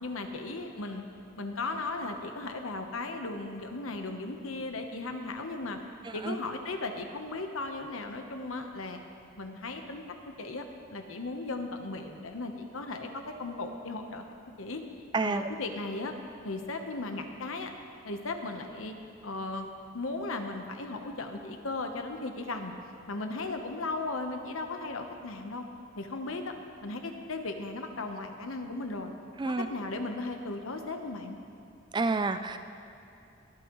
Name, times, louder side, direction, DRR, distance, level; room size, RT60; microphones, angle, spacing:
voice 1, 0.0-1.0 1.4-5.8 6.1-9.0 9.4-14.2 14.6-14.8 15.2-16.1 16.4-17.7 18.0-19.0 19.2-19.7 19.9-22.7 23.1-25.6 26.0-26.5 26.8-29.1 29.4-31.4, left 2 dB, 80° left, 5 dB, 1.0 m, -36 dB
voice 2, 15.1-15.5 29.4-29.7 31.9-32.6, right 3 dB, 20° right, 9 dB, 0.3 m, -28 dB
23.5 x 8.8 x 3.1 m, 2.8 s
head